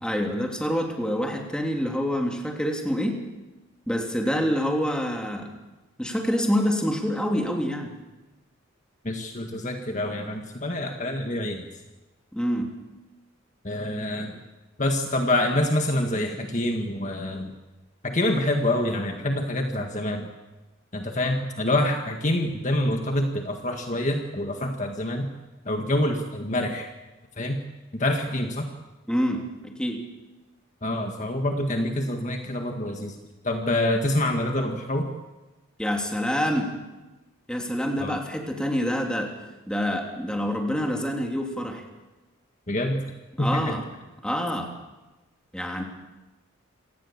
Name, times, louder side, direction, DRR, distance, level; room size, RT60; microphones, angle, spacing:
voice 1, 0.0-3.2 3.9-5.5 6.0-7.9 12.3-12.7 29.1-30.0 35.8-36.7 37.5-39.3 39.7-41.8 43.4-43.8 44.2-44.7 45.5-45.8, equal, 5° left, 1 dB, 3.1 m, -26 dB
voice 2, 9.0-11.7 13.6-14.3 14.8-17.5 18.0-20.3 20.9-25.3 25.6-26.9 27.4-27.6 27.9-28.7 30.8-33.1 33.4-35.1 38.0-38.2 42.7-43.1 43.4-43.8, left 1 dB, 35° left, 3 dB, 1.8 m, -26 dB
27.0 x 18.0 x 7.3 m, 1.1 s
head